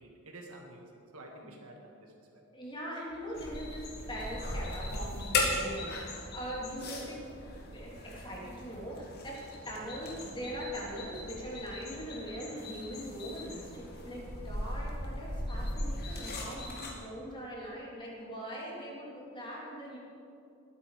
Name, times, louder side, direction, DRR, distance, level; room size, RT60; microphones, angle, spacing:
voice 1, 0.0-2.4, right 1 dB, 75° right, 1 dB, 2.0 m, -50 dB
voice 2, 2.5-7.2 7.6-9.4 9.6-20.0, equal, 20° left, -4 dB, 3.2 m, -41 dB
sound 1, 3.3-16.9, left 2 dB, 45° left, 2.2 m, -38 dB
21.0 x 9.6 x 5.1 m, 2.6 s
head